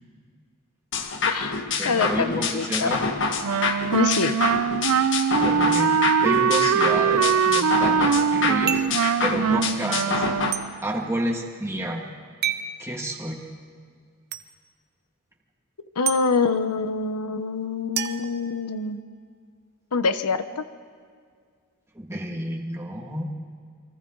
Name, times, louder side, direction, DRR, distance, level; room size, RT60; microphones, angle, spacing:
sound 1, 0.9-10.5, left 4 dB, 60° left, 1.6 m, -27 dB
voice 1, 1.3-2.9 3.9-4.4 16.0-19.0 19.9-20.6, left 4 dB, 90° left, 11 dB, 1.0 m, -25 dB
voice 2, 1.8-3.0 5.4-5.9 6.2-8.8 9.2-10.3 10.8-12.1 12.8-13.4 21.9-23.3, right 1 dB, 10° right, -1 dB, 2.1 m, -30 dB
Wind instrument woodwind instrument, 3.4-10.8, right 7 dB, 75° right, 0.5 m, -22 dB
sound 2, 8.7-9.0 10.5-10.7 12.4-12.7 14.3-14.4 16.1-16.2 18.0-19.0, right 9 dB, 45° right, 0.9 m, -29 dB
29.5 x 23.5 x 4.0 m, 2.1 s
head